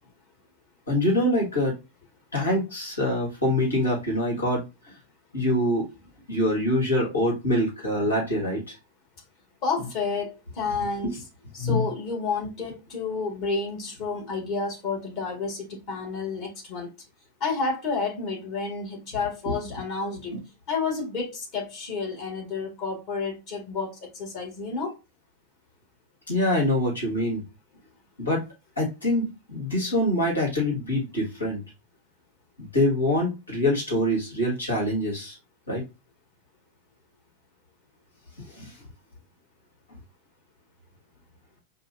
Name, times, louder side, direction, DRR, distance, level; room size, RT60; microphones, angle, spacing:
voice 1, 0.9-1.7 2.3-4.7 5.3-5.9 6.3-8.7 11.6-11.9 19.5-19.6 26.3-27.4 28.2-28.4 28.8-31.6 32.7-35.3 35.7-35.8 38.5-38.7, left 1 dB, 75° left, 1.9 m, -24 dB
voice 2, 9.6-11.2 11.5-16.9 17.4-20.4 20.7-24.9, left 4 dB, 45° left, 2.0 m, -30 dB
5.3 x 2.5 x 2.7 m
figure-of-eight pair, 90°, 0 cm